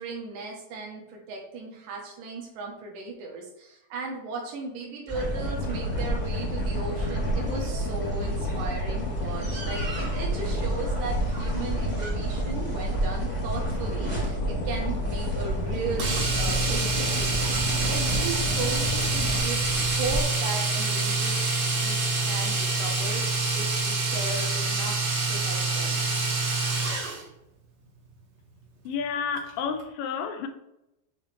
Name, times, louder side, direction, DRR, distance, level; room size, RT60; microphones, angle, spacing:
voice 1, 0.0-22.0 22.3-24.9 25.3-26.0, right 3 dB, 80° right, 2.8 m, -36 dB
Boat Water vehicle, 5.1-19.4, left 1 dB, 65° left, 2.0 m, -32 dB
sound 1, 5.1-20.2, right 2 dB, 10° right, 1.6 m, -32 dB
Domestic sounds home sounds, 16.0-27.2 29.4-29.5 29.8-29.9, right 3 dB, 55° right, 2.5 m, -26 dB
voice 2, 28.9-30.5, left 6 dB, 85° left, 2.4 m, -30 dB
7.3 x 3.4 x 4.3 m
omnidirectional pair, 3.8 m